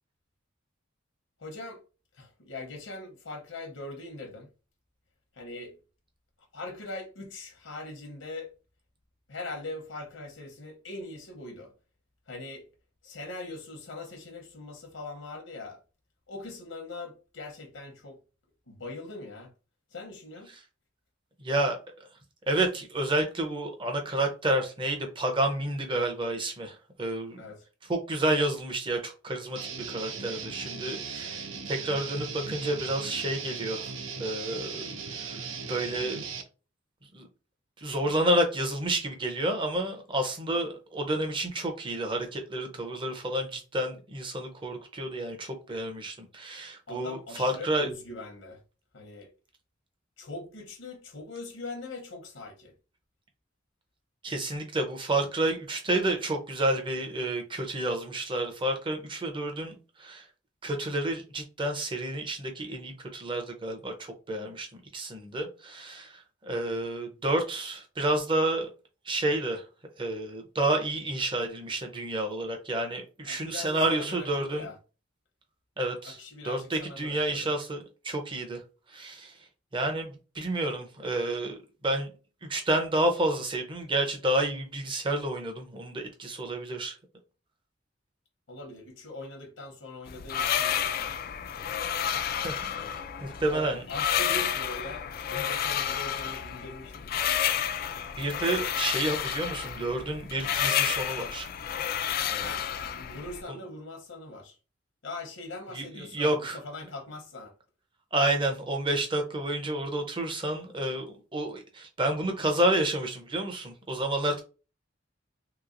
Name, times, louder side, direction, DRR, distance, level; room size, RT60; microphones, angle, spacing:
voice 1, 1.4-1.8 2.1-4.5 5.3-5.8 6.5-8.5 9.3-11.7 12.3-12.7 13.0-15.8 16.3-18.2 18.7-19.5 19.9-20.5 27.4-27.6 46.9-48.6 48.9-49.3 50.2-52.7 73.2-74.7 76.0-77.5 88.5-91.2 92.7-93.0 93.5-97.2 102.4-104.6 105.0-107.5, left 2 dB, 85° left, 0.9 m, -41 dB
voice 2, 21.4-21.8 22.5-27.4 27.9-29.6 29.9-35.4 35.7-36.2 37.1-37.3 37.8-47.9 54.2-60.3 60.6-68.7 69.1-69.6 70.0-74.7 75.8-78.6 78.9-79.4 79.7-82.1 82.5-87.0 92.4-92.6 92.9-93.0 93.2-93.8 98.2-101.5 102.2-102.5 105.7-106.6 108.1-114.4, right 1 dB, 25° right, 0.7 m, -30 dB
Guitar, 29.5-36.4, right 5 dB, 85° right, 0.6 m, -38 dB
sound 1, 90.1-103.4, left 9 dB, 50° left, 0.3 m, -30 dB
3.2 x 2.9 x 2.5 m
head